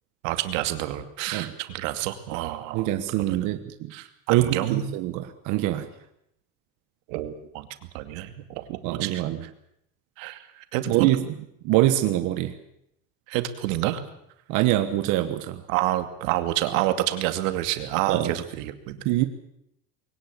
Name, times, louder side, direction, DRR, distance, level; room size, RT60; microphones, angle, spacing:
voice 1, 0.2-2.9 3.3-3.5 3.9-4.8 7.1-7.7 7.9-9.5 10.2-11.1 13.3-14.0 15.7-19.0, right 14 dB, 80° right, 8 dB, 2.5 m, -28 dB
voice 2, 2.7-3.9 4.3-5.9 8.8-9.4 10.9-11.2 11.6-12.5 14.5-15.6 18.1-18.3 19.0-19.2, right 14 dB, 50° right, 8 dB, 1.4 m, -24 dB
22.0 x 18.5 x 8.3 m, 0.77 s
cardioid pair, 170°, 38 cm